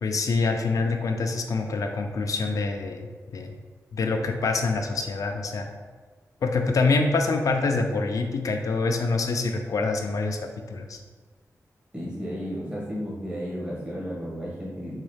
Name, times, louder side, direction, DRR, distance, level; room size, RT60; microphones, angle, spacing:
voice 1, 0.0-3.5 3.9-5.7 6.4-10.4 10.7-11.0, left 3 dB, 65° left, 4 dB, 0.3 m, -25 dB
voice 2, 11.9-15.0, equal, 15° right, -7 dB, 1.5 m, -33 dB
3.9 x 2.3 x 3.2 m, 1.4 s
cardioid pair, 65°, 6 cm